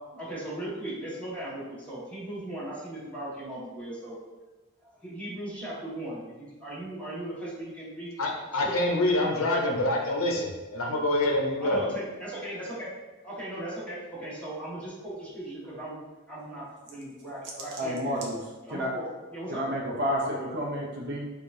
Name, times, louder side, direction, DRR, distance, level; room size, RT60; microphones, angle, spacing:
voice 1, 0.1-4.2 4.8-8.2 8.5-8.8 11.6-12.9 13.2-16.0 16.3-18.2 18.6-19.0 19.3-19.6, right 1 dB, 5° left, -10 dB, 1.3 m, -38 dB
voice 2, 8.2-11.8, left 1 dB, 70° left, 1 dB, 0.7 m, -26 dB
voice 3, 17.8-18.4 18.7-18.9 19.5-21.3, equal, 50° right, -3 dB, 0.6 m, -30 dB
4.6 x 2.4 x 2.6 m, 1.2 s
head